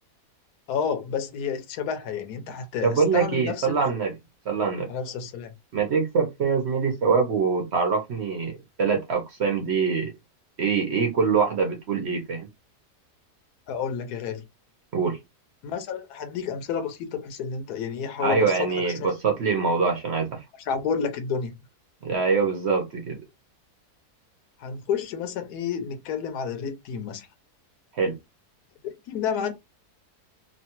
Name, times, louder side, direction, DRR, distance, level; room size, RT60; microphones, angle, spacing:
voice 1, 0.7-3.9 4.9-5.5 13.7-14.4 15.6-19.1 20.6-21.6 24.6-27.3 28.8-29.5, left 7 dB, 80° left, 1.1 m, -30 dB
voice 2, 2.8-4.1 4.5-4.9 5.7-10.1 10.6-12.5 14.9-15.2 18.2-20.4 22.0-23.2 27.9-28.2, right 5 dB, 60° right, 0.8 m, -24 dB
3.0 x 2.2 x 2.8 m
omnidirectional pair, 1.7 m